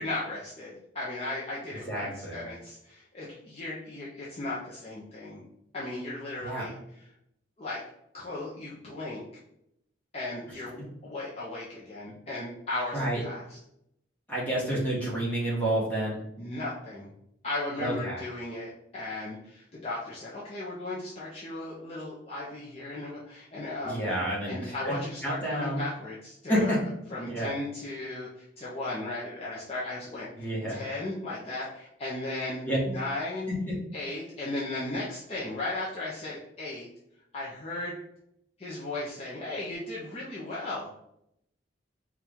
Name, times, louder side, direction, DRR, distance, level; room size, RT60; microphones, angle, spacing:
voice 1, 0.0-5.4 5.7-7.1 7.6-7.8 8.1-9.2 10.1-13.6 16.4-17.1 17.4-24.0 24.5-26.8 27.1-33.5 33.9-36.9 37.3-38.0 38.6-40.9, left 2 dB, 30° left, -7 dB, 0.6 m, -36 dB
voice 2, 1.9-2.4 6.4-6.6 12.9-13.2 14.3-16.2 17.8-18.2 23.8-24.9 25.2-25.8 26.5-26.8 27.3-27.5 30.4-30.8 32.7-32.8 33.7-33.8, right 1 dB, 10° left, -6 dB, 1.2 m, -29 dB
4.3 x 2.4 x 3.6 m, 0.77 s
head